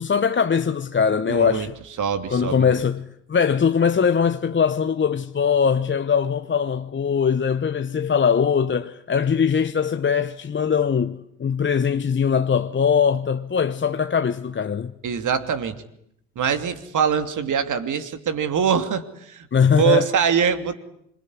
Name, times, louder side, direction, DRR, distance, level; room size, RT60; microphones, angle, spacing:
voice 1, 0.0-1.8 2.3-14.9 19.5-20.1, left 6 dB, 30° left, 1.1 m, -21 dB
voice 2, 1.3-1.7 2.0-2.7 15.0-15.8 16.4-19.5 19.7-20.7, right 7 dB, 55° right, 2.9 m, -23 dB
26.0 x 22.5 x 9.9 m
hypercardioid pair, 55°, 37 cm